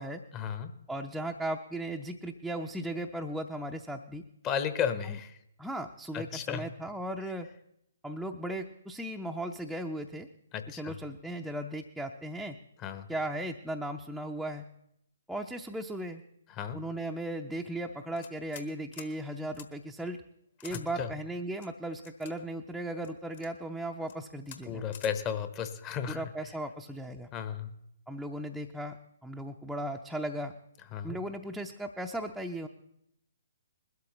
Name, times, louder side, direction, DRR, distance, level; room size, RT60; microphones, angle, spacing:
voice 1, 0.3-0.7 4.4-5.4 6.1-6.6 10.5-10.9 12.8-13.1 16.5-16.8 20.7-21.1 24.6-26.3 27.3-27.7 30.9-31.2, left 8 dB, 20° left, 10 dB, 0.9 m, -34 dB
voice 2, 0.9-4.2 5.1-5.2 5.6-7.5 8.0-10.3 10.7-12.6 13.1-14.6 15.3-16.2 16.7-20.2 20.6-24.9 26.1-27.3 28.1-29.0 29.2-30.5 31.0-32.7, right 1 dB, ahead, 0 dB, 0.6 m, -37 dB
sound 1, 18.2-18.7 18.9-19.1 19.5-19.7 20.6-20.9 21.6-22.3 23.0-23.5 24.0-24.2 24.5-24.6 24.9-25.1, left 9 dB, 45° left, 1.3 m, -47 dB
21.0 x 13.0 x 3.0 m, 0.78 s
figure-of-eight pair, 130°, 0 cm